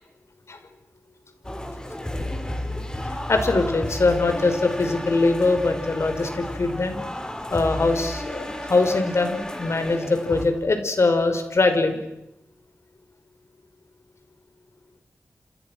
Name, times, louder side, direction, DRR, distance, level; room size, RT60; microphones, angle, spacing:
sound 1, 1.4-10.5, left 1 dB, 15° left, 4.5 m, -32 dB
voice 1, 3.3-7.0 7.5-12.0, left 3 dB, 60° left, 7 dB, 5.4 m, -22 dB
29.5 x 28.5 x 6.4 m, 0.88 s
wide cardioid pair, 90°, 5 cm